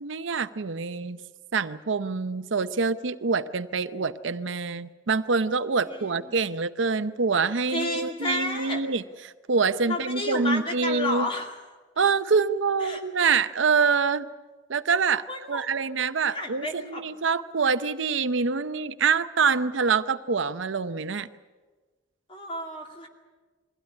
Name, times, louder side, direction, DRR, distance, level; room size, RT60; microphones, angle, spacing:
voice 1, 0.0-1.2 1.5-11.3 12.0-14.3 14.7-21.3, right 5 dB, 75° right, 12 dB, 0.7 m, -25 dB
voice 2, 5.8-6.4 7.7-8.8 9.9-11.5 12.8-13.0 15.3-15.7 16.3-17.0 22.3-23.1, left 1 dB, 25° left, 2 dB, 2.6 m, -32 dB
22.0 x 16.0 x 9.9 m, 1.3 s
head